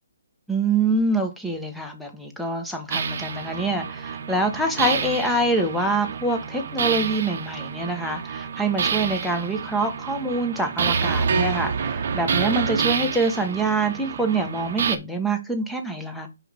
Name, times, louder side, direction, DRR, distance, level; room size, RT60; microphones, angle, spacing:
voice 1, 0.5-16.3, right 2 dB, ahead, 1.2 m, -25 dB
sound 1, 2.9-15.0, right 6 dB, 50° right, 0.9 m, -28 dB
5.2 x 4.9 x 3.6 m
figure-of-eight pair, 140°, 0 cm